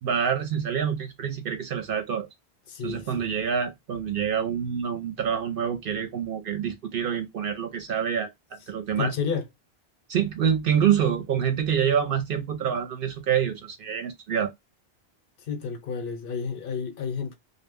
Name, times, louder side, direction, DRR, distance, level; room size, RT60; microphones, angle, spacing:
voice 1, 0.0-2.3 2.8-8.3 8.7-9.1 10.1-14.5, right 8 dB, 65° right, 0.7 m, -26 dB
voice 2, 2.7-3.4 9.0-9.5 15.4-17.3, left 6 dB, 65° left, 0.9 m, -31 dB
2.1 x 2.1 x 3.4 m
omnidirectional pair, 1.1 m